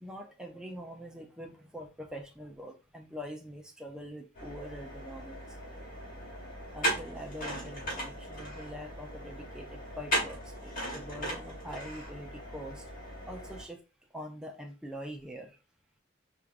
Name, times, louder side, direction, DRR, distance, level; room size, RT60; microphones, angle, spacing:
voice 1, 0.0-5.6 6.7-12.9 13.2-13.8 14.1-15.6, equal, 5° right, 2 dB, 0.5 m, -44 dB
sound 1, 4.3-13.6, right 1 dB, 45° left, 1.6 m, -37 dB
4.4 x 2.5 x 2.5 m, 0.31 s
head